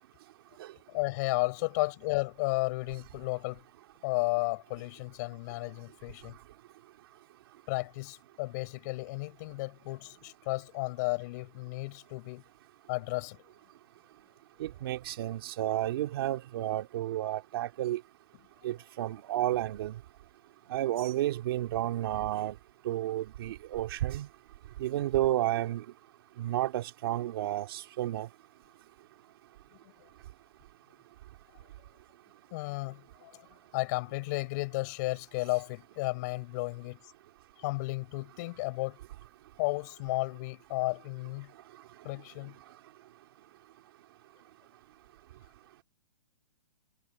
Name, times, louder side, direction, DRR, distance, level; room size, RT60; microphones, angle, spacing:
voice 1, 0.9-3.6 4.0-6.4 7.7-12.4 12.9-13.4 32.5-33.5 33.7-37.0 37.6-39.0 39.6-41.5 42.0-42.5, left 23 dB, 30° left, 5.8 m, -33 dB
voice 2, 14.6-18.0 18.6-19.9 20.7-22.5 22.8-24.3 24.8-25.8 26.4-28.3, right 14 dB, 40° right, 2.5 m, -31 dB
hypercardioid pair, 165°, 18 cm